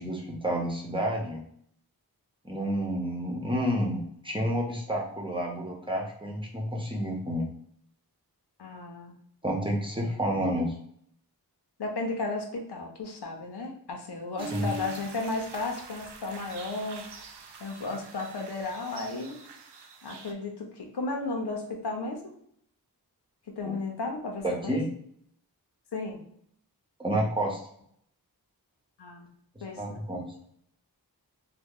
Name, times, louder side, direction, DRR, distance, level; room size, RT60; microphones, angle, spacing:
voice 1, 0.0-1.4 2.4-7.5 9.4-10.7 14.5-14.7 23.6-23.8 24.4-24.9 27.0-27.6 29.8-30.3, equal, 15° right, -1 dB, 0.9 m, -30 dB
voice 2, 8.6-9.1 11.8-17.0 17.6-19.4 20.0-22.3 23.6-24.8 25.9-26.2 29.0-29.3 29.6-30.1, left 3 dB, 80° left, 1 dB, 0.7 m, -34 dB
sound 1, 14.4-20.3, right 3 dB, 90° right, 0.5 m, -43 dB
2.9 x 2.2 x 3.6 m, 0.68 s
cardioid pair, 40°, 39 cm